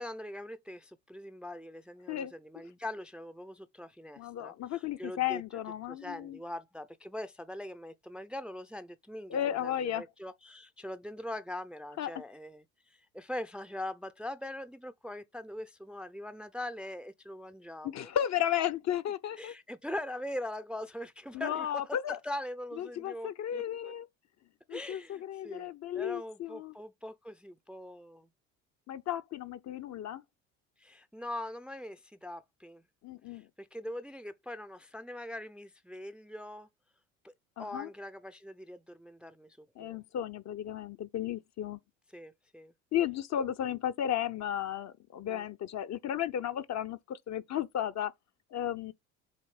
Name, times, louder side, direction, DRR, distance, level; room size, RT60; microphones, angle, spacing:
voice 1, 0.0-5.4 5.9-18.1 19.4-23.9 24.7-25.7 25.9-28.3 30.8-32.8 33.3-36.7 37.2-40.0 42.1-42.7 45.2-45.5, left 1 dB, ahead, 0.6 m, -42 dB
voice 2, 4.2-6.4 9.3-10.0 12.0-12.1 17.8-19.5 21.3-22.2 22.8-24.1 24.7-26.8 28.9-30.2 33.0-33.5 37.6-37.9 39.8-41.8 42.9-48.1 48.5-48.9, left 10 dB, 40° left, 0.8 m, -34 dB
7.7 x 2.7 x 4.9 m
hypercardioid pair, 70°, 40 cm